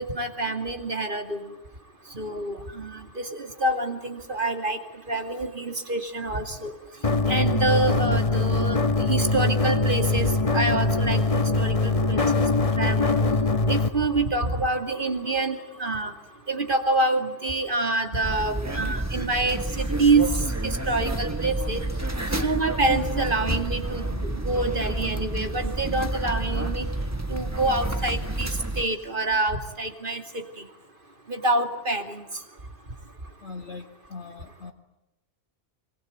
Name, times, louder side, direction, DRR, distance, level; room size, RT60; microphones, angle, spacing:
voice 1, 0.0-1.4 2.1-4.8 5.1-6.7 7.3-12.4 12.8-13.1 13.7-16.1 16.5-20.3 20.6-21.8 22.3-26.9 27.3-28.5 28.8-30.4 31.3-32.2, right 2 dB, 50° right, 6 dB, 2.7 m, -26 dB
sound 1, 7.0-13.9, left 3 dB, 30° left, 1.3 m, -22 dB
sound 2, 18.2-28.8, right 2 dB, 15° right, 1.5 m, -29 dB
voice 2, 33.4-34.7, left 4 dB, 65° left, 2 dB, 2.3 m, -40 dB
25.0 x 25.0 x 9.3 m, 0.95 s
omnidirectional pair, 1.2 m